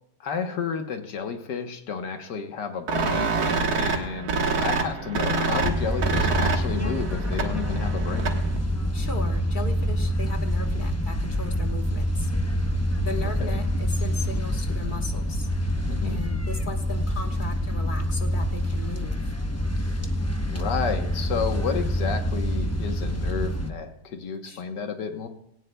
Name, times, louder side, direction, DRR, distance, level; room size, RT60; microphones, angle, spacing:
voice 1, 0.2-3.4 3.7-4.3 4.6-8.4 13.2-13.6 15.9-16.2 20.5-25.3, left 6 dB, 80° left, 5 dB, 1.7 m, -31 dB
sound 1, 2.9-8.6, right 4 dB, 65° right, 1.8 m, -27 dB
sound 2, 5.6-23.7, equal, 15° left, 0.7 m, -26 dB
voice 2, 8.9-12.3 13.0-15.5 16.0-19.3 24.4-24.6, left 4 dB, 30° left, 3 dB, 1.3 m, -37 dB
19.5 x 18.0 x 2.3 m, 0.76 s
omnidirectional pair, 1.8 m